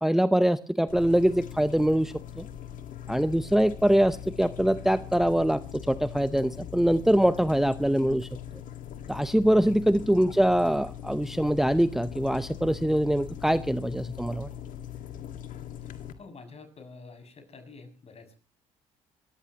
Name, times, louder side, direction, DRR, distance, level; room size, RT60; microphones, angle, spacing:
voice 1, 0.0-2.4 3.1-5.6 5.9-8.3 9.1-14.5, right 1 dB, ahead, 13 dB, 0.7 m, -23 dB
sound 1, 0.9-16.1, left 9 dB, 65° left, 1.9 m, -41 dB
voice 2, 15.8-18.4, left 4 dB, 45° left, 7 dB, 6.6 m, -48 dB
28.0 x 14.5 x 2.9 m, 0.36 s
supercardioid pair, 65°, 14 cm